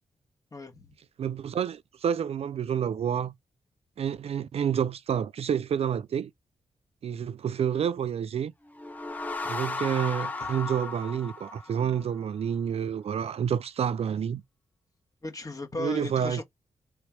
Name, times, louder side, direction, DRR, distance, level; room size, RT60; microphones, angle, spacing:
voice 1, 0.5-0.9 15.2-16.4, left 2 dB, 30° left, 1.5 m, -36 dB
voice 2, 1.2-3.3 4.0-6.3 7.0-8.5 9.4-14.4 15.8-16.4, right 8 dB, 60° right, 0.4 m, -29 dB
sound 1, 8.7-12.2, left 3 dB, 15° left, 0.8 m, -35 dB
3.3 x 3.2 x 4.6 m
cardioid pair, 80°, 12 cm